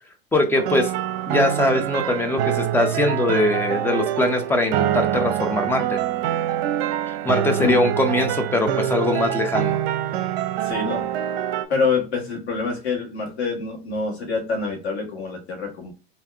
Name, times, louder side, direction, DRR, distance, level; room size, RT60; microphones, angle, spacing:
voice 1, 0.3-0.9 1.3-6.0 7.1-9.8, left 1 dB, 5° left, 4 dB, 0.7 m, -22 dB
sound 1, 0.6-11.6, right 11 dB, 60° right, 0.7 m, -25 dB
voice 2, 10.6-11.1 11.7-15.9, left 4 dB, 90° left, 0 dB, 1.7 m, -26 dB
3.5 x 2.8 x 3.4 m, 0.37 s
hypercardioid pair, 115°, 32 cm